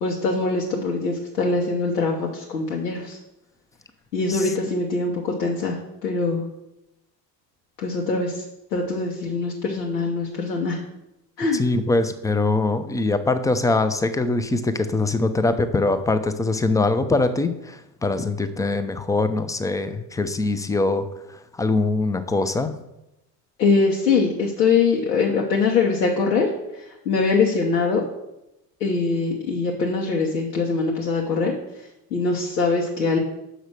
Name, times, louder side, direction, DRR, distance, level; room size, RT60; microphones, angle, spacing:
voice 1, 0.0-3.2 4.1-5.8 6.0-6.4 7.8-8.3 8.7-10.8 11.4-11.6 23.6-26.5 27.1-28.0 28.8-31.5 32.1-33.2, left 4 dB, 80° left, -1 dB, 1.0 m, -22 dB
voice 2, 11.5-22.7, left 3 dB, 5° left, 10 dB, 0.5 m, -23 dB
6.4 x 5.0 x 6.5 m, 0.90 s
figure-of-eight pair, 60°, 49 cm